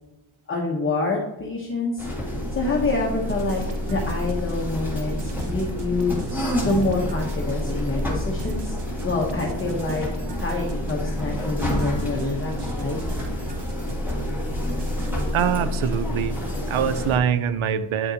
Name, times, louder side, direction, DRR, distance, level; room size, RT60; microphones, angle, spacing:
voice 1, 0.5-2.0 2.5-3.6 3.9-6.2 6.6-8.8 9.0-10.1 10.4-13.0, left 3 dB, 25° left, -2 dB, 0.9 m, -26 dB
sound 1, 2.0-17.2, left 1 dB, 5° right, 1.6 m, -28 dB
sound 2, 3.3-15.5, right 3 dB, 60° right, 0.9 m, -39 dB
voice 2, 15.3-16.4 16.7-18.1, right 8 dB, 85° right, 13 dB, 0.6 m, -23 dB
8.8 x 6.5 x 2.8 m, 1.0 s
wide cardioid pair, 175°, 48 cm